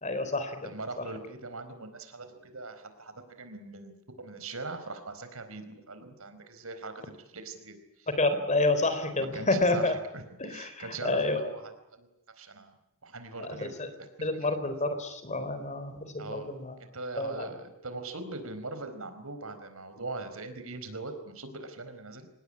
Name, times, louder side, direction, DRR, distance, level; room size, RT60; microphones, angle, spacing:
voice 1, 0.0-0.7 8.2-9.9 10.4-11.5 13.4-13.9 14.2-16.0 16.3-16.7 17.2-17.5, left 2 dB, 35° left, 10 dB, 4.0 m, -29 dB
voice 2, 0.6-8.1 9.2-12.1 12.4-12.7 13.0-14.5 16.2-16.5 16.8-22.3, right 3 dB, 80° right, 9 dB, 4.5 m, -41 dB
26.0 x 19.5 x 9.9 m, 0.86 s
head